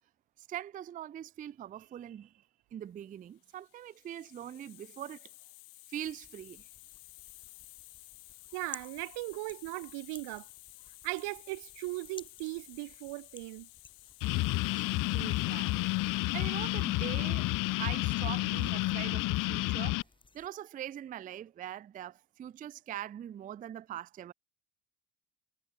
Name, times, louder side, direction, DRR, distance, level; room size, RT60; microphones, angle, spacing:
voice 1, 0.4-2.3 2.7-5.3 5.9-6.6 15.1-15.8 16.3-17.5 17.8-20.0 20.3-24.3, right 11 dB, 20° right, 0.4 m, -42 dB
Hiss, 3.4-20.0, left 25 dB, 90° left, 1.9 m, -55 dB
sound 1, 5.9-20.5, left 4 dB, 10° left, 1.1 m, -57 dB
voice 2, 8.5-10.5 11.0-13.7, right 26 dB, 85° right, 1.2 m, -38 dB
sound 2, 14.2-20.0, left 21 dB, 55° left, 0.5 m, -30 dB
cardioid pair, 160°, 40 cm